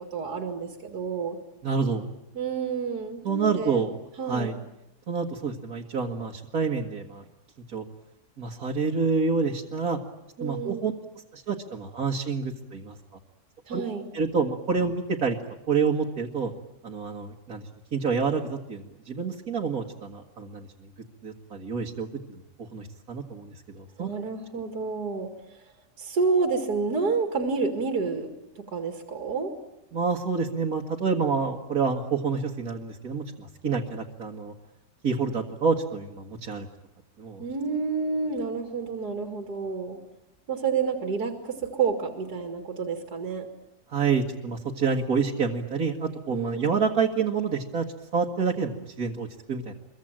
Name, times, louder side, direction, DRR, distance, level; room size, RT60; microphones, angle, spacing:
voice 1, 0.1-1.4 2.3-3.8 4.2-4.5 10.4-10.8 13.7-14.1 24.0-25.3 26.0-28.3 28.6-29.5 37.4-40.0 40.5-43.5 46.3-46.6, right 5 dB, 75° right, 4 dB, 2.7 m, -29 dB
voice 2, 1.6-2.1 3.2-3.9 4.3-4.5 5.1-7.2 7.7-7.8 8.4-10.0 10.4-10.9 11.3-13.0 13.7-13.8 14.1-15.4 15.7-16.5 16.8-17.6 17.9-20.7 21.2-24.1 29.9-34.5 35.0-36.7 37.2-37.4 43.9-47.9 48.1-49.7, right 5 dB, 60° right, -2 dB, 2.2 m, -28 dB
26.0 x 23.0 x 8.9 m, 0.89 s
omnidirectional pair, 1.7 m